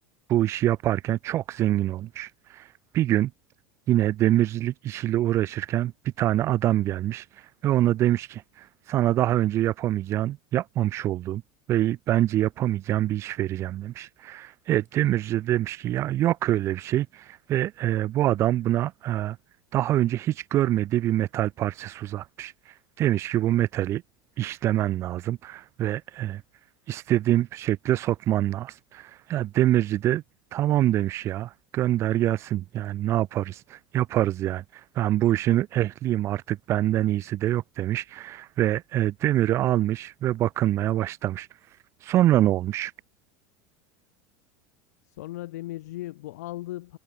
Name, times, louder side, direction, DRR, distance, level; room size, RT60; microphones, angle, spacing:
voice 1, 0.3-3.3 3.9-11.4 11.7-19.4 19.7-24.0 24.4-26.4 26.9-30.2 30.5-42.9, right 13 dB, 35° right, 1.9 m, -25 dB
voice 2, 45.1-47.0, left 16 dB, 90° left, 6.7 m, -37 dB
supercardioid pair, 165°, 9 cm